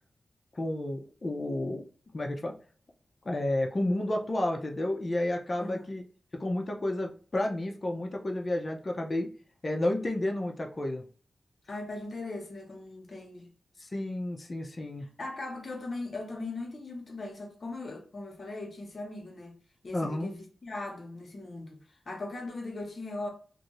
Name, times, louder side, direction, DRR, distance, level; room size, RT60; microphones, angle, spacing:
voice 1, 0.6-1.9 2.1-2.5 3.2-6.0 6.3-9.3 9.6-11.0 13.8-15.0 19.9-20.3, left 1 dB, 40° left, 0.6 m, -31 dB
voice 2, 5.6-6.0 11.7-13.5 15.0-19.6 19.8-23.3, left 2 dB, 55° left, 1.0 m, -39 dB
2.6 x 2.6 x 3.1 m
wide cardioid pair, 75°, 0 cm